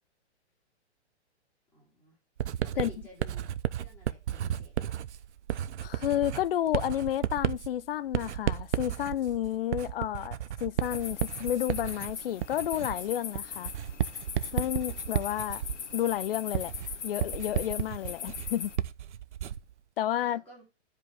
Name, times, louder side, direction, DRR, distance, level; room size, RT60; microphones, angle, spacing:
voice 1, 1.7-2.2 2.6-3.5 3.8-4.8 20.2-20.6, left 1 dB, 5° left, 5.5 m, -54 dB
Writing, 2.4-19.7, right 10 dB, 70° right, 0.8 m, -33 dB
voice 2, 5.8-13.7 14.5-15.6 15.9-16.7 17.0-18.7 20.0-20.4, left 12 dB, 55° left, 0.6 m, -31 dB
sound 1, 10.8-18.8, left 7 dB, 80° left, 1.6 m, -40 dB
14.0 x 5.2 x 3.5 m
hypercardioid pair, 160°, 35 cm